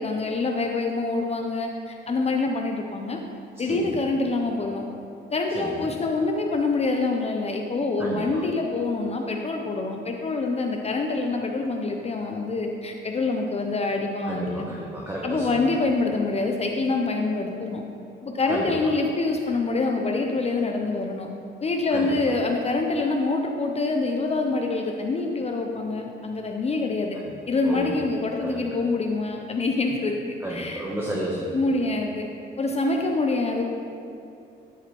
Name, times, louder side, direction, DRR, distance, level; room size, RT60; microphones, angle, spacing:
voice 1, 0.0-3.2 3.6-4.9 5.3-14.7 15.2-17.8 18.2-21.3 21.6-27.2 27.5-30.8 31.5-32.3 32.6-33.7, left 3 dB, 30° left, 2 dB, 0.6 m, -26 dB
voice 2, 3.6-4.0 5.5-5.9 8.0-8.4 14.2-15.8 18.5-18.9 21.9-22.4 27.1-27.4 27.6-28.0 28.4-28.6 30.4-31.6, right 1 dB, 10° right, -4 dB, 0.9 m, -32 dB
10.5 x 4.8 x 3.0 m, 2.7 s
cardioid pair, 90°, 20 cm